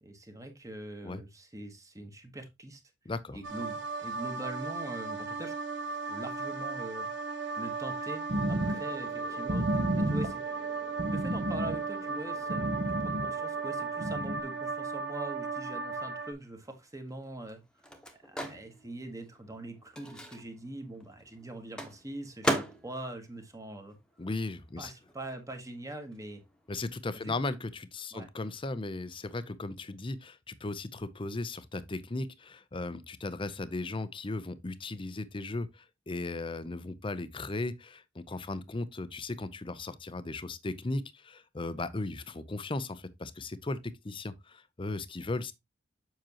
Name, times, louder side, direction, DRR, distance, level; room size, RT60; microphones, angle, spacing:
voice 1, 0.0-2.8 3.3-5.5 6.1-7.1 7.6-8.2 8.5-10.4 11.1-17.6 18.2-24.0 24.8-26.4 27.2-27.3 28.1-28.3, right 1 dB, 15° right, 1.2 m, -43 dB
voice 2, 3.0-3.4 24.2-24.9 26.7-45.5, left 2 dB, 25° left, 0.6 m, -36 dB
sound 1, 3.4-16.3, right 4 dB, 70° right, 1.3 m, -36 dB
sound 2, 8.3-13.7 14.0-14.4, equal, 45° right, 0.8 m, -32 dB
Microwave oven, 16.5-24.6 24.9-26.8, equal, 5° left, 1.2 m, -39 dB
7.6 x 6.0 x 2.9 m
head